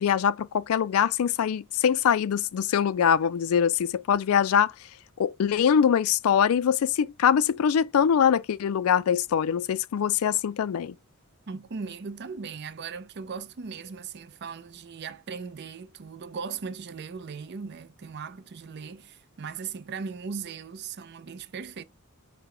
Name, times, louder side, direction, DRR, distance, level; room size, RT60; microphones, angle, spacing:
voice 1, 0.0-4.7 5.2-10.9, left 8 dB, 75° left, 0.3 m, -23 dB
voice 2, 11.5-21.8, right 5 dB, 50° right, 0.5 m, -38 dB
5.1 x 2.1 x 4.6 m
head